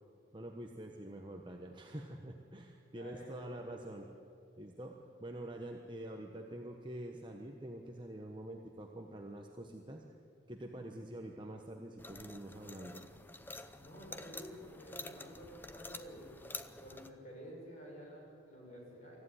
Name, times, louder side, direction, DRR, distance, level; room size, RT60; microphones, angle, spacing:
voice 1, 0.3-4.1 4.6-10.0 10.5-13.0, right 1 dB, 25° right, 2 dB, 1.1 m, -46 dB
voice 2, 2.9-3.9 13.7-16.4 16.8-19.2, equal, 35° left, -2 dB, 6.3 m, -51 dB
sound 1, 12.0-17.1, left 3 dB, 10° left, 0.7 m, -49 dB
24.5 x 15.0 x 10.0 m, 2.6 s
head